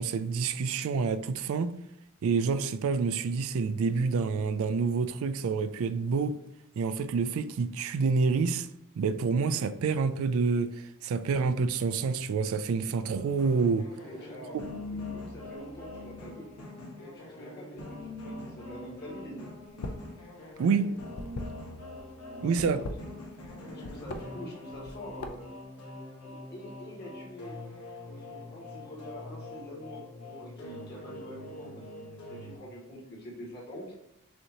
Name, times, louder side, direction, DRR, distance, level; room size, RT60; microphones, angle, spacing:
voice 1, 0.0-1.7 2.2-6.4 6.8-8.7 9.0-13.9 20.6-20.9 22.4-22.8, right 5 dB, 65° right, 0.3 m, -28 dB
sound 1, 13.0-32.6, left 2 dB, 85° left, 1.2 m, -44 dB
voice 2, 14.0-16.5 17.0-19.5 22.3-23.2 23.5-25.5 26.2-27.6 28.0-33.8, equal, 45° left, 1.6 m, -45 dB
sound 2, 19.7-20.1 20.4-22.0 22.5-23.5 23.8-24.2 24.7-25.6, left 2 dB, 70° left, 0.5 m, -39 dB
6.3 x 2.8 x 2.9 m
head